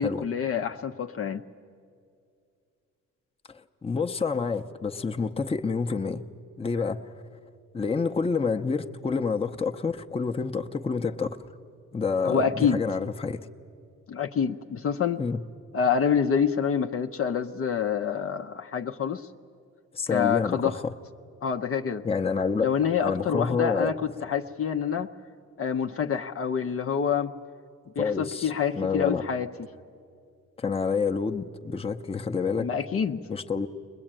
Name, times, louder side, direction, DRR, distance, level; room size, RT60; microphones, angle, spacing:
voice 1, 0.0-1.4 12.2-12.8 14.1-15.2 15.7-19.3 20.1-20.8 21.4-22.1 22.6-25.1 25.6-27.3 28.0-29.5 32.6-33.2, left 7 dB, 50° left, 5 dB, 0.8 m, -27 dB
voice 2, 3.5-6.2 6.6-7.1 7.7-11.4 11.9-13.5 15.2-15.4 19.9-20.9 22.0-22.7 23.0-23.9 28.0-29.2 30.6-32.7 33.3-33.7, left 5 dB, 20° left, 4 dB, 0.8 m, -28 dB
22.0 x 21.0 x 8.9 m, 2.4 s
cardioid pair, 90°, 30 cm